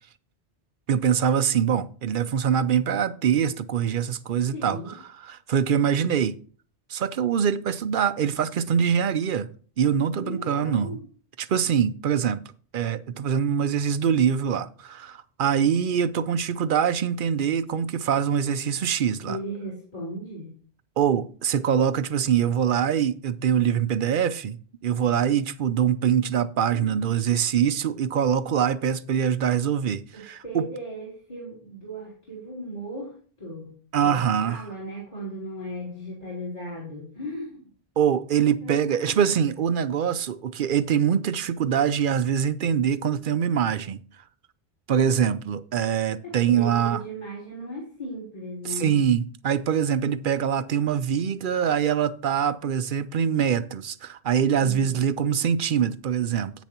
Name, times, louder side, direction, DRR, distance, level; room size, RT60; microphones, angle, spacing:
voice 1, 0.9-6.4 6.9-9.5 9.8-11.0 11.4-12.4 12.7-19.4 21.0-24.6 24.8-30.7 33.9-34.6 38.0-44.0 44.9-47.0 48.6-56.5, right 8 dB, 60° right, 0.6 m, -24 dB
voice 2, 4.5-5.0 10.1-11.0 19.2-20.6 26.7-27.1 30.1-33.1 33.4-33.8 34.0-37.7 38.6-39.3 46.2-48.9, equal, 35° left, 3.5 m, -37 dB
10.0 x 9.2 x 2.9 m
omnidirectional pair, 1.1 m